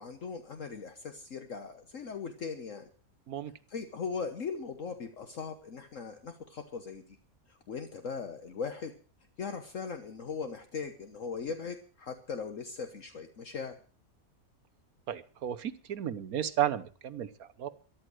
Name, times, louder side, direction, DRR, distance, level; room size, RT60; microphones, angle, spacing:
voice 1, 0.0-2.9 3.7-7.0 7.5-8.9 9.4-13.8, left 5 dB, 60° left, 7 dB, 1.5 m, -39 dB
voice 2, 15.1-17.7, right 10 dB, 75° right, 13 dB, 1.5 m, -33 dB
14.0 x 12.0 x 6.3 m, 0.40 s
omnidirectional pair, 1.5 m